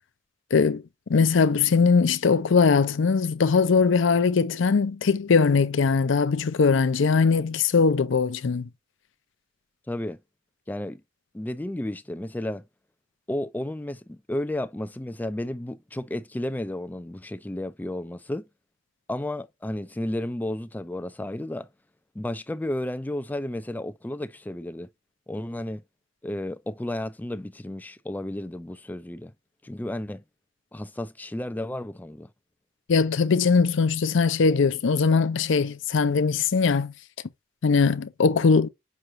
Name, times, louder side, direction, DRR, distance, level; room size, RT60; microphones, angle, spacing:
voice 1, 0.5-0.8 1.1-8.7 32.9-36.9 37.6-38.7, left 5 dB, 65° left, 0.5 m, -21 dB
voice 2, 9.9-10.2 10.7-11.0 11.3-12.6 13.3-18.4 19.1-21.7 22.1-24.9 25.3-25.8 26.2-29.3 29.6-30.2 30.7-32.3, left 1 dB, 10° left, 0.3 m, -32 dB
5.7 x 3.1 x 2.5 m
head